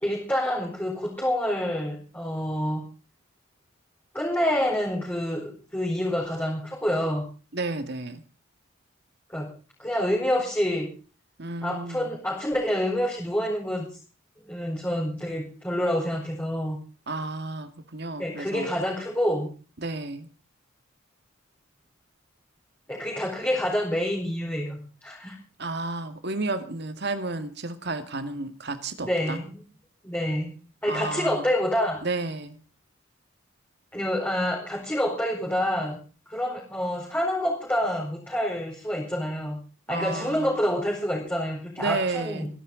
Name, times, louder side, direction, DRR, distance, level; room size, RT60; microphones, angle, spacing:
voice 1, 0.0-2.8 4.1-7.2 9.3-9.5 9.8-10.9 11.6-13.9 14.4-16.8 18.2-19.5 22.9-25.4 29.0-29.6 30.0-30.5 30.8-32.0 33.9-36.0 36.3-39.6 39.9-42.5, equal, 10° left, -3 dB, 4.6 m, -27 dB
voice 2, 7.5-8.2 11.4-12.2 17.1-18.7 19.8-20.3 25.6-29.4 30.9-31.5 32.0-32.6 39.9-40.5 41.8-42.5, right 3 dB, 50° right, 9 dB, 2.0 m, -32 dB
26.0 x 11.5 x 3.9 m, 0.36 s
head